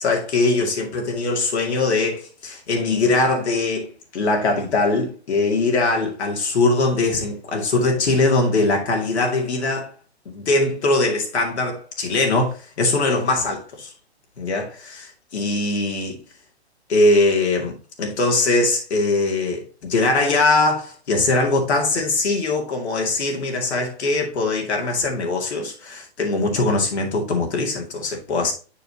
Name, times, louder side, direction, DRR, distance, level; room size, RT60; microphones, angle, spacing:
voice 1, 0.0-9.9 10.3-13.9 14.4-16.2 16.9-28.5, left 2 dB, 80° left, 2.3 m, -21 dB
6.8 x 6.0 x 2.8 m
hypercardioid pair, 130°, 33 cm